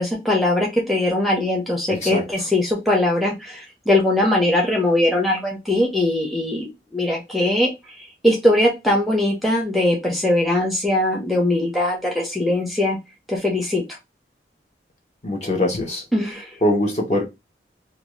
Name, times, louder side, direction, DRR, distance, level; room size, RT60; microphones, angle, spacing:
voice 1, 0.0-6.7 6.9-7.7 8.0-13.0 13.3-13.8 16.1-16.5, left 1 dB, ahead, 0.6 m, -20 dB
voice 2, 1.9-2.2 15.2-16.0 16.6-17.2, left 1 dB, 40° left, 0.9 m, -22 dB
2.6 x 2.3 x 3.0 m
head